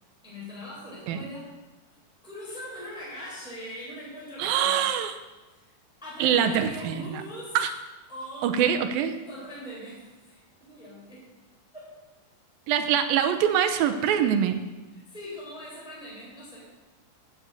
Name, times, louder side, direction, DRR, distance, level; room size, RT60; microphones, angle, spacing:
voice 1, 0.2-1.5 2.2-4.8 5.5-5.7 6.0-7.6 8.1-8.6 9.3-10.3 10.6-11.3 11.7-12.0 14.9-16.7, equal, ahead, -7 dB, 3.8 m, -41 dB
voice 2, 4.4-5.1 6.2-7.2 7.6-7.7 8.4-9.2 12.7-14.6, right 9 dB, 85° right, 9 dB, 2.6 m, -24 dB
9.7 x 7.4 x 7.9 m, 1.1 s
omnidirectional pair, 4.1 m